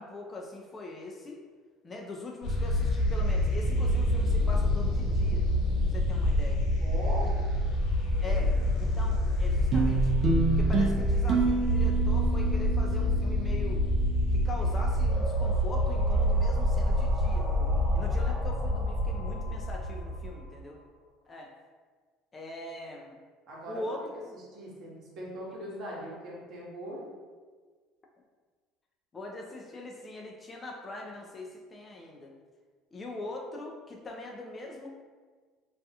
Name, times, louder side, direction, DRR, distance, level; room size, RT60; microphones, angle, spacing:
voice 1, 0.0-1.4 1.8-5.5 5.9-6.6 8.2-10.1 10.6-13.9 14.3-17.5 17.9-20.8 21.3-21.5 22.3-23.1 23.7-24.0 29.1-32.3 32.9-34.9, left 2 dB, 30° left, 0 dB, 0.3 m, -42 dB
sound 1, 2.4-20.5, equal, 75° left, 0.6 m, -27 dB
voice 2, 6.8-7.3 23.5-23.9 24.3-27.0, right 1 dB, 60° right, -5 dB, 0.8 m, -40 dB
sound 2, 9.7-14.3, right 4 dB, 45° right, 0.4 m, -29 dB
sound 3, 15.1-20.8, left 1 dB, ahead, 0.8 m, -42 dB
2.3 x 2.2 x 2.7 m, 1.5 s
supercardioid pair, 90°, 0 cm